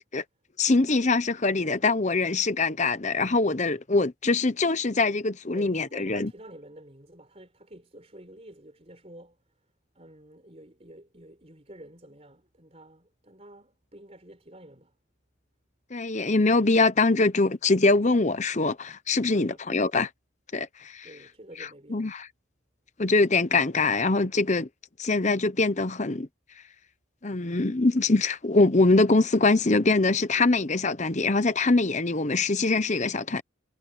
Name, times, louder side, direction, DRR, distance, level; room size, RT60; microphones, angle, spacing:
voice 1, 0.6-6.3 15.9-20.1 20.5-21.1 21.9-22.3 23.0-24.7 25.0-26.3 27.2-33.4, left 3 dB, 35° left, 0.9 m, -23 dB
voice 2, 5.5-9.6 9.9-15.0 19.2-19.7 21.0-22.1, right 1 dB, 30° right, 4.3 m, -49 dB
head